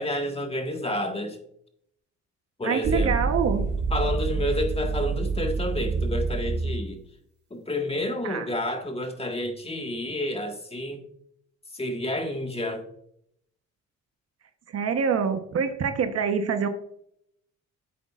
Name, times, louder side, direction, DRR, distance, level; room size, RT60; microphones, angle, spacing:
voice 1, 0.0-1.4 2.6-3.2 3.9-7.0 7.5-11.0 11.7-12.8, left 1 dB, 20° left, 3 dB, 1.7 m, -30 dB
voice 2, 2.6-3.6 8.2-8.5 14.7-16.7, right 6 dB, 55° right, 7 dB, 1.0 m, -25 dB
sound 1, 2.8-6.9, right 4 dB, 35° right, 2.2 m, -27 dB
10.5 x 8.2 x 2.5 m, 0.71 s
cardioid pair, 90°, 30 cm